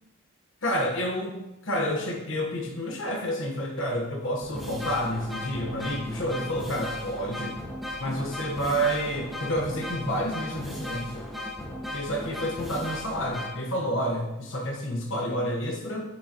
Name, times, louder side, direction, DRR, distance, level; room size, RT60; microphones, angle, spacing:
voice 1, 0.6-1.4 1.6-7.6 8.0-11.2 11.9-16.0, equal, 65° left, 0 dB, 1.3 m, -29 dB
sound 1, 3.8-3.9 4.4-13.5, left 1 dB, ahead, 1.2 m, -36 dB
9.2 x 6.2 x 3.0 m, 0.98 s
head